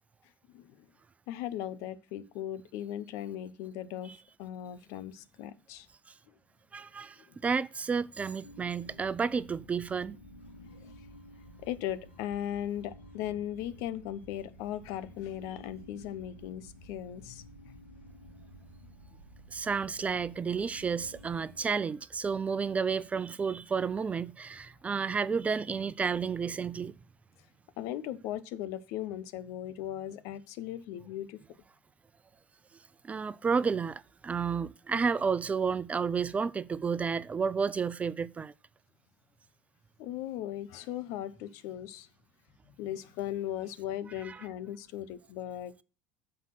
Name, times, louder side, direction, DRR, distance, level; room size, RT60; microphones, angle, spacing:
voice 1, 0.5-0.9 1.3-4.1 4.4-5.9 6.3-6.4 7.3-7.4 10.6-10.9 11.6-17.7 27.8-31.4 40.0-42.1 42.7-45.8, left 11 dB, 60° left, 0.8 m, -38 dB
voice 2, 6.7-10.2 19.5-26.9 33.0-38.5 44.2-44.4, right 5 dB, 25° right, 0.4 m, -31 dB
sound 1, 8.4-21.6, equal, 90° left, 2.2 m, -52 dB
7.7 x 5.5 x 5.9 m
figure-of-eight pair, 70°, 6 cm